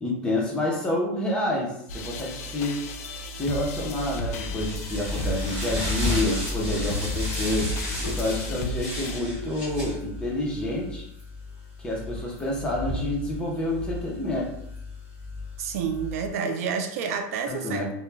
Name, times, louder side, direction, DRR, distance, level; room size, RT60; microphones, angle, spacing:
voice 1, 0.0-2.8 3.4-7.7 8.1-11.1 11.8-14.5 17.5-17.9, left 1 dB, 10° left, -3 dB, 0.5 m, -28 dB
sound 1, 1.9-9.2, left 1 dB, 70° left, 0.4 m, -34 dB
sound 2, 4.3-16.3, left 2 dB, 15° right, 1.3 m, -33 dB
voice 2, 15.6-17.8, right 6 dB, 75° right, 5 dB, 0.4 m, -29 dB
2.2 x 2.1 x 3.2 m, 0.75 s
supercardioid pair, 160°, 8 cm